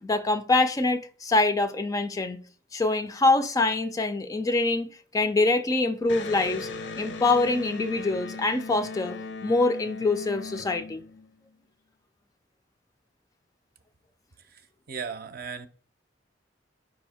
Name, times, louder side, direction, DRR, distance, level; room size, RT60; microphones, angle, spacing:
voice 1, 0.0-2.4 2.7-6.7 7.0-11.0, left 2 dB, 20° left, 0.3 m, -25 dB
Electric guitar, 6.1-11.5, left 3 dB, 85° left, 0.6 m, -38 dB
voice 2, 14.9-15.7, right 6 dB, 55° right, 0.6 m, -35 dB
4.8 x 2.7 x 4.1 m
head